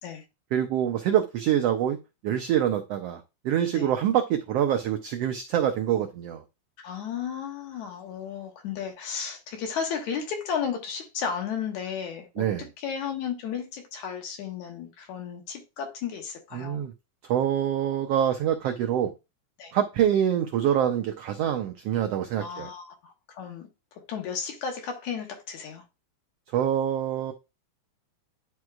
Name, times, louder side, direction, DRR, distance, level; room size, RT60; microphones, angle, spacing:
voice 1, 0.5-2.0 2.2-6.4 12.4-12.6 16.5-16.9 17.3-19.1 19.7-22.7 26.5-27.3, right 10 dB, 85° right, 1.4 m, -25 dB
voice 2, 6.8-16.8 19.6-19.7 22.4-25.9, left 7 dB, 70° left, 2.6 m, -34 dB
10.5 x 4.6 x 2.4 m
omnidirectional pair, 3.6 m